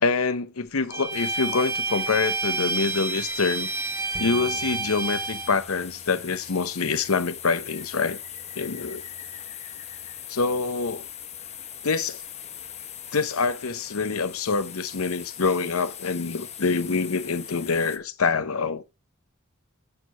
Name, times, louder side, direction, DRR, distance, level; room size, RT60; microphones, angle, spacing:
voice 1, 0.0-3.7 4.2-8.2 8.5-9.0 10.3-11.1 11.8-12.2 13.1-18.8, left 4 dB, 85° left, 0.8 m, -26 dB
Bowed string instrument, 0.9-5.5, right 3 dB, 15° right, 1.1 m, -29 dB
Jaguar Creek Belize, 1.1-18.0, left 9 dB, 30° left, 0.8 m, -41 dB
sound 1, 4.1-12.9 13.4-13.5, right 1 dB, 5° left, 1.8 m, -52 dB
7.6 x 4.7 x 5.4 m
head